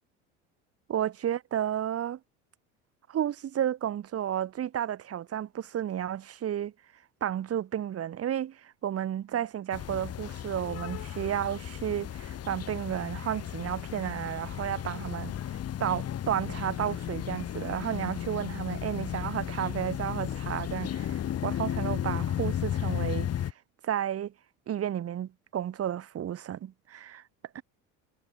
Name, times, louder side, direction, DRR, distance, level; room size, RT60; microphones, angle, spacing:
voice 1, 0.9-2.2 3.1-6.7 7.2-15.3 15.8-23.5 23.8-24.3 24.7-27.2 27.5-27.6, right 10 dB, 40° right, 4.7 m, -32 dB
sound 1, 9.7-23.5, left 10 dB, 45° left, 6.7 m, -34 dB
supercardioid pair, 100°, 35 cm